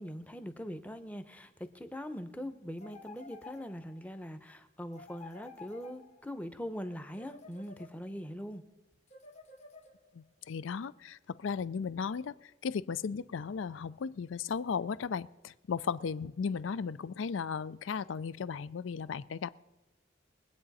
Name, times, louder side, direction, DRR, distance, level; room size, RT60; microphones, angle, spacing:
voice 1, 0.0-8.6, equal, 5° left, 0.7 m, -42 dB
sound 1, 2.8-4.1 4.9-6.4 7.1-8.3 9.1-10.3, left 4 dB, 35° left, 1.2 m, -52 dB
voice 2, 10.1-12.3 12.6-19.6, left 6 dB, 80° left, 0.4 m, -36 dB
22.5 x 8.7 x 4.1 m
head